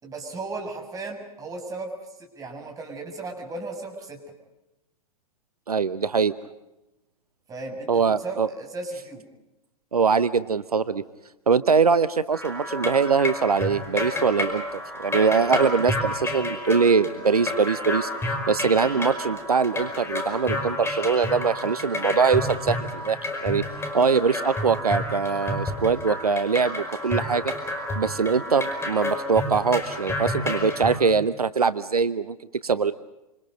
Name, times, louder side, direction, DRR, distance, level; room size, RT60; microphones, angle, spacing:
voice 1, 0.0-1.9 2.2-4.2 7.5-9.2, right 3 dB, 20° right, 3 dB, 6.4 m, -35 dB
voice 2, 5.7-6.3 7.9-8.5 9.9-11.0 11.5-23.6 23.9-27.5 27.9-32.4 32.6-32.9, right 5 dB, 80° right, 14 dB, 0.9 m, -22 dB
sound 1, 12.3-31.0, left 1 dB, 15° left, 5.2 m, -30 dB
28.0 x 27.0 x 5.3 m, 0.95 s
figure-of-eight pair, 100°, 19 cm